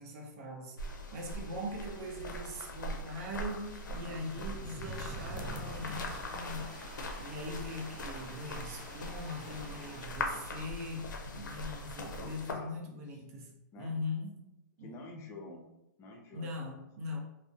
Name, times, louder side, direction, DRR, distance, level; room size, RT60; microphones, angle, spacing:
voice 1, 0.0-14.4 14.8-14.9 16.3-17.2, left 1 dB, 50° right, 0.6 m, -41 dB
sound 1, 0.8-12.5, left 1 dB, 85° left, 0.5 m, -41 dB
sound 2, 3.9-7.3, right 1 dB, 70° right, 0.9 m, -46 dB
sound 3, 4.8-10.0, equal, 10° right, 0.6 m, -51 dB
voice 2, 12.2-13.0 13.7-13.9 14.8-15.7 16.0-16.8, left 2 dB, 25° left, 0.5 m, -49 dB
2.4 x 2.0 x 2.5 m
hypercardioid pair, 125°, 10 cm